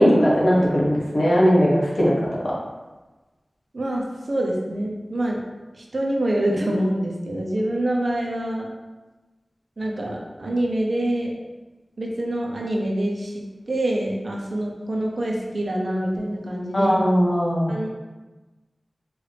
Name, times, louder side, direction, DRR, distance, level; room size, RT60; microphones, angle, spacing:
voice 1, 0.0-2.1 16.7-17.7, equal, 65° left, -5 dB, 1.2 m, -18 dB
voice 2, 3.7-5.4 5.7-8.7 9.8-11.3 12.0-17.1 17.7-17.9, right 1 dB, 65° right, -1 dB, 0.7 m, -26 dB
4.8 x 2.6 x 3.3 m, 1.2 s
wide cardioid pair, 70°, 0 cm